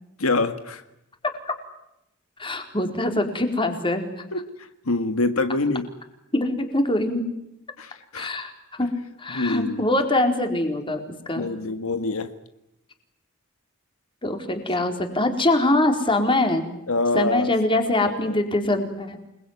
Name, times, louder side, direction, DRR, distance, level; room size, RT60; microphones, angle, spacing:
voice 1, 0.2-0.8 4.3-4.4 4.9-5.9 7.8-8.3 9.3-9.8 11.4-12.3 16.9-17.5 18.0-18.4, left 2 dB, 80° left, 9 dB, 1.8 m, -25 dB
voice 2, 2.4-4.2 6.3-7.2 8.1-8.5 8.8-8.9 9.2-11.5 14.2-16.7 17.1-19.2, left 1 dB, 25° left, 5 dB, 4.3 m, -23 dB
29.0 x 21.0 x 9.6 m, 0.85 s
head